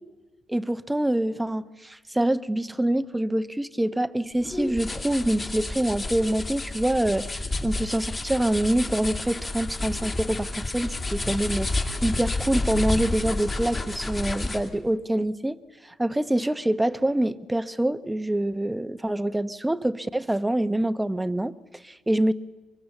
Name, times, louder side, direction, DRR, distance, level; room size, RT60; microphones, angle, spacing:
voice 1, 0.5-15.6 15.8-22.3, right 1 dB, 10° right, 13 dB, 0.8 m, -26 dB
sound 1, 4.4-14.8, left 2 dB, 30° left, 2.3 m, -30 dB
24.0 x 23.0 x 7.2 m, 1.3 s
cardioid pair, 90°, 0 cm